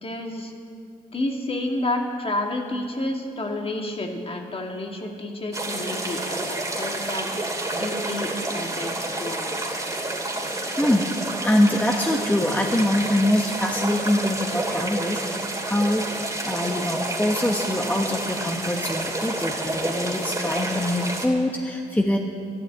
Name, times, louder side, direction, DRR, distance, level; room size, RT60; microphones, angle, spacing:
voice 1, 0.0-0.5 1.1-7.3 7.7-8.9 9.2-9.5, left 1 dB, 35° left, 2 dB, 2.3 m, -30 dB
sound 1, 5.5-21.3, right 2 dB, 20° right, 2.9 m, -29 dB
voice 2, 11.4-15.2 15.6-16.1 16.4-22.2, left 1 dB, 10° left, 1 dB, 1.2 m, -23 dB
12.0 x 11.5 x 9.0 m, 2.4 s
cardioid pair, 70°, 17 cm